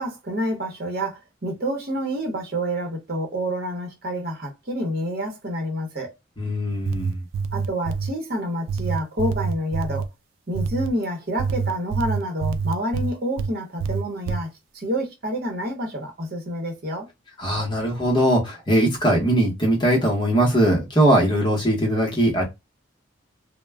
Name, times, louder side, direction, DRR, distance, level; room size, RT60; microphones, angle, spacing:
voice 1, 0.0-6.1 7.5-10.1 10.5-14.5 14.7-17.1, equal, 50° right, 0.9 m, -28 dB
voice 2, 6.4-7.1 17.4-22.4, right 1 dB, 25° left, 0.8 m, -20 dB
sound 1, 6.7-8.1 8.7-10.1 10.5-10.9 11.4-13.5 13.8-14.4, right 5 dB, 75° right, 0.3 m, -26 dB
2.2 x 2.1 x 3.3 m
head